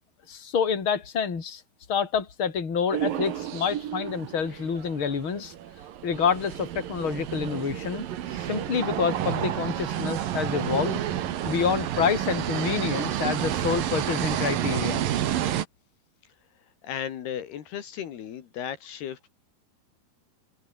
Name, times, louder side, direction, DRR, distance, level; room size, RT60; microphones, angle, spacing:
voice 1, 0.3-1.6 1.9-5.5 6.0-11.0 11.4-15.0, left 6 dB, 30° left, 4.1 m, -28 dB
sound 1, 2.9-15.6, right 11 dB, 65° right, 3.2 m, -30 dB
voice 2, 16.8-19.3, left 9 dB, 75° left, 4.1 m, -35 dB
open air
omnidirectional pair, 4.7 m